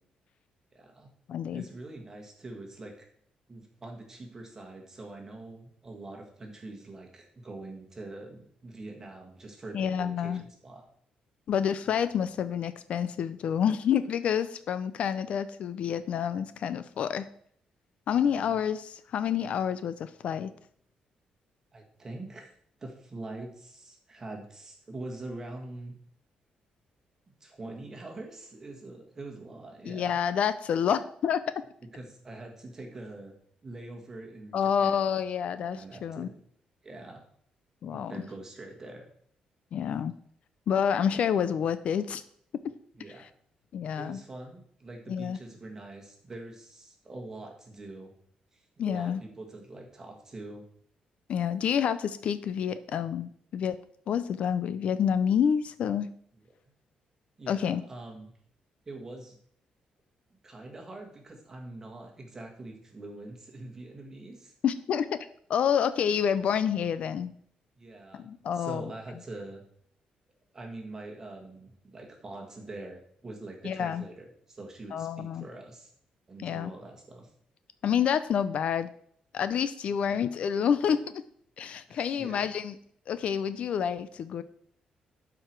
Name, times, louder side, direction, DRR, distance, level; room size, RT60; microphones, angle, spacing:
voice 1, 0.7-1.1 1.5-3.1 3.5-10.9 18.1-18.6 21.7-22.5 22.8-26.0 27.4-30.2 31.9-33.4 33.6-35.0 35.7-36.3 36.8-37.2 37.9-39.1 43.0-43.3 44.0-48.1 48.5-50.6 57.4-58.3 58.8-59.4 60.4-64.5 67.8-68.3 68.5-69.6 70.5-75.9 76.3-77.3 79.9-80.1 81.9-82.5, right 2 dB, 20° right, 2 dB, 1.5 m, -44 dB
voice 2, 1.3-1.6 9.7-10.4 11.5-17.3 18.1-20.5 29.8-31.4 34.5-36.3 37.8-38.1 39.7-40.1 40.7-42.2 43.2-43.3 43.7-44.2 45.1-45.4 48.8-49.2 51.3-53.8 54.1-56.1 57.5-57.8 64.6-65.2 65.5-67.3 68.1-68.9 73.6-74.0 74.9-75.4 76.4-76.7 77.8-78.9 79.3-81.2 81.6-82.7 83.1-84.4, left 8 dB, 55° left, 13 dB, 0.4 m, -28 dB
12.0 x 4.9 x 4.5 m, 0.64 s
cardioid pair, 175°, 3 cm